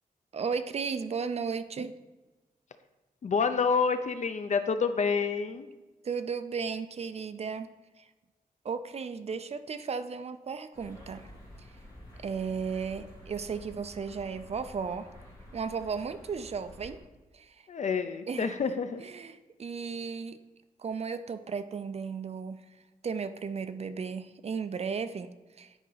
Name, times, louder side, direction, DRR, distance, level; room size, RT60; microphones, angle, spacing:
voice 1, 0.3-2.0 6.0-8.1 8.6-11.3 11.6-11.7 12.2-15.1 15.5-17.0 17.3-17.7 18.3-18.5 19.0-20.4 20.8-22.6 23.0-25.7, right 5 dB, 45° right, 11 dB, 0.4 m, -35 dB
voice 2, 3.2-5.7 17.7-19.0, left 5 dB, 50° left, 10 dB, 0.5 m, -28 dB
sound 1, 10.7-17.0, left 1 dB, 25° left, 2.2 m, -50 dB
10.0 x 4.7 x 4.0 m, 1.1 s
wide cardioid pair, 155°, 15 cm